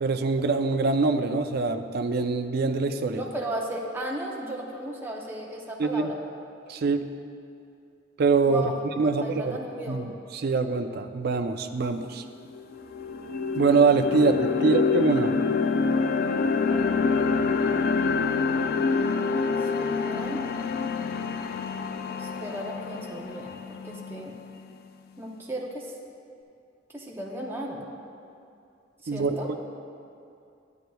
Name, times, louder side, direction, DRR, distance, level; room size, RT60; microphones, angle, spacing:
voice 1, 0.0-3.2 5.8-6.1 6.7-7.1 8.2-9.6 9.9-12.2 13.6-15.3 29.1-29.4, right 4 dB, 55° right, 7 dB, 0.4 m, -24 dB
voice 2, 3.1-6.2 8.4-8.8 9.0-10.0 14.6-14.7 19.7-20.4 22.2-24.4 25.2-25.9 26.9-28.1 29.0-29.5, right 1 dB, 10° right, -2 dB, 0.6 m, -35 dB
sound 1, 12.0-12.1 12.5-24.6, left 4 dB, 55° left, 0.3 m, -27 dB
11.0 x 9.1 x 2.3 m, 2.6 s
head